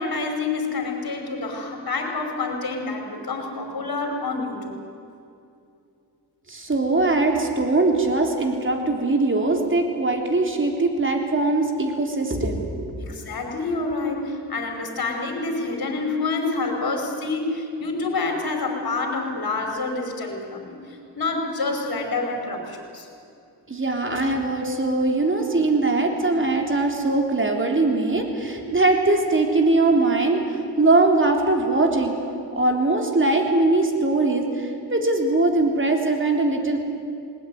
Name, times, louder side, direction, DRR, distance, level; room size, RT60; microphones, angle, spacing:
voice 1, 0.0-4.8 13.0-20.8 21.1-23.1, left 3 dB, 55° left, 3 dB, 5.1 m, -27 dB
voice 2, 6.5-12.9 23.7-32.1 32.6-36.8, right 2 dB, 30° right, 3 dB, 3.6 m, -21 dB
20.0 x 19.5 x 9.4 m, 2.6 s
cardioid pair, 95°, 43 cm